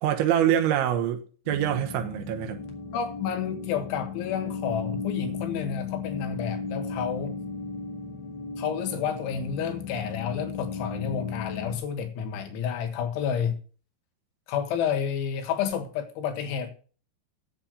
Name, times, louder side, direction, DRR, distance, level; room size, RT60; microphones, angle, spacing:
voice 1, 0.0-2.6, right 10 dB, 85° right, 3.5 m, -25 dB
sound 1, 1.5-11.8, left 5 dB, 50° left, 2.3 m, -35 dB
voice 2, 2.9-7.4 8.6-13.6 14.5-16.7, left 7 dB, 90° left, 4.0 m, -30 dB
8.7 x 7.6 x 6.7 m
omnidirectional pair, 5.3 m